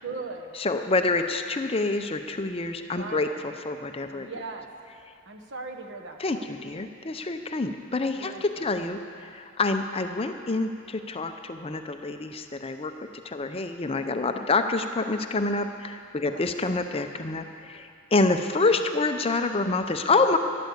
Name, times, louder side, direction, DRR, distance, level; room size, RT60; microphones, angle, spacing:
voice 1, 0.0-0.5 2.9-3.3 4.1-4.7 5.3-6.5 8.1-8.9 16.2-16.4 20.0-20.4, right 3 dB, 55° right, 3 dB, 1.3 m, -39 dB
voice 2, 0.6-3.3 3.7-4.3 6.2-12.9 13.2-20.4, left 3 dB, 25° left, 7 dB, 0.6 m, -27 dB
13.0 x 12.0 x 8.0 m, 2.4 s
head